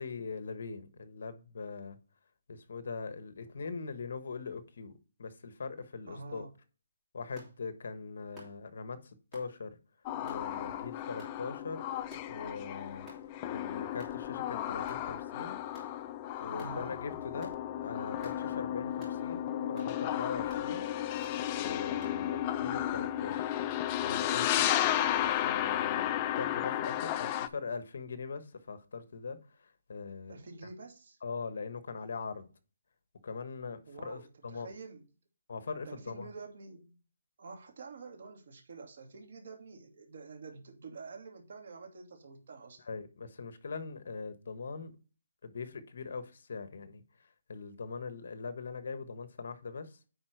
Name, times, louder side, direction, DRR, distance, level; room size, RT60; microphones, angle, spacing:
voice 1, 0.0-2.0 2.5-4.9 5.2-6.5 7.1-9.8 10.2-11.8 12.3-13.1 13.5-15.6 16.4-17.5 17.8-20.9 21.5-23.5 24.0-24.7 25.4-30.4 31.2-32.5 33.2-34.7 35.5-36.3 42.8-44.9 45.4-50.0, left 4 dB, 55° left, 1.3 m, -41 dB
voice 2, 6.1-6.5 16.5-16.9 30.3-31.2 33.9-35.0 35.8-37.0 37.4-42.9, right 4 dB, 50° right, 2.5 m, -48 dB
sound 1, 7.4-7.5 8.4-8.6 9.3-9.5 10.3-10.5 11.2-11.4 12.1-12.4 13.1-13.2 14.0-14.2 14.9-15.1 15.7-15.9 16.6-16.8 17.4-17.6 18.2-18.4 19.0-19.2 19.8-19.9 20.5-20.7 21.2-21.4 22.0-22.2, equal, 5° right, 2.8 m, -52 dB
sound 2, 10.1-27.5, left 12 dB, 20° left, 0.4 m, -33 dB
9.7 x 4.3 x 4.6 m
hypercardioid pair, 175°, 0 cm